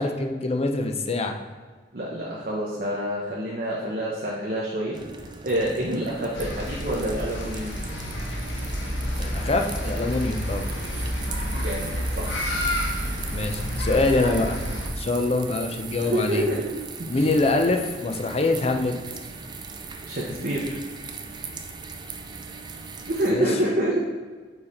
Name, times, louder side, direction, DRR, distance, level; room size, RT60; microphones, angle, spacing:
voice 1, 0.0-1.4 9.2-10.7 13.3-14.6 14.9-16.5 17.1-18.9 23.3-23.5, left 2 dB, 35° left, 4 dB, 0.6 m, -24 dB
voice 2, 1.9-4.9 5.4-7.7 11.5-11.9 12.2-12.3 15.9-16.7 17.1-17.3 20.1-20.8 23.1-24.0, right 1 dB, 50° right, -4 dB, 0.8 m, -27 dB
sound 1, 4.9-23.3, right 4 dB, 25° right, 0.4 m, -39 dB
sound 2, 6.3-14.9, equal, 90° left, 1.1 m, -29 dB
4.9 x 4.7 x 4.3 m, 1.4 s
head